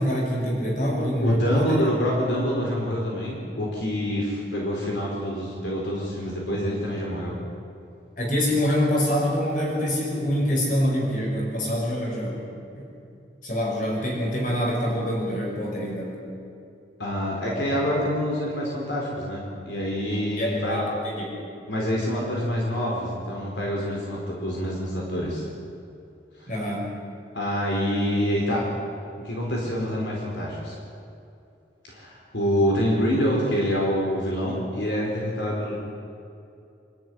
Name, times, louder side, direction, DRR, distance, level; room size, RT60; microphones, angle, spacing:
voice 1, 0.0-1.8 8.2-12.4 12.7-12.9 13.4-16.2 20.4-21.2 26.5-26.9, equal, 45° left, -2 dB, 6.2 m, -25 dB
voice 2, 1.2-7.4 17.0-20.8 21.7-25.4 26.4-26.5 27.3-28.7 29.2-30.8 31.9-35.7, equal, 75° left, -3 dB, 4.5 m, -26 dB
26.0 x 13.5 x 9.9 m, 2.6 s
head